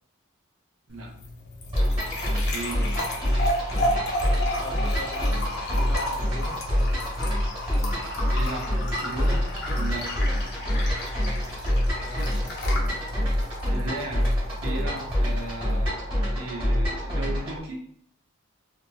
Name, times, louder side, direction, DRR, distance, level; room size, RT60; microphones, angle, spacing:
sound 1, 0.9-15.9, left 1 dB, 50° left, 0.6 m, -33 dB
sound 2, 1.7-17.6, equal, 25° right, 1.2 m, -26 dB
voice 1, 2.5-2.8 8.3-9.4 9.7-10.1 13.7-14.3 14.6-17.8, right 2 dB, 75° right, -1 dB, 0.7 m, -35 dB
voice 2, 4.3-5.5 5.7-6.6 12.0-12.5, left 1 dB, 5° right, -5 dB, 0.6 m, -41 dB
2.8 x 2.6 x 2.3 m, 0.64 s
head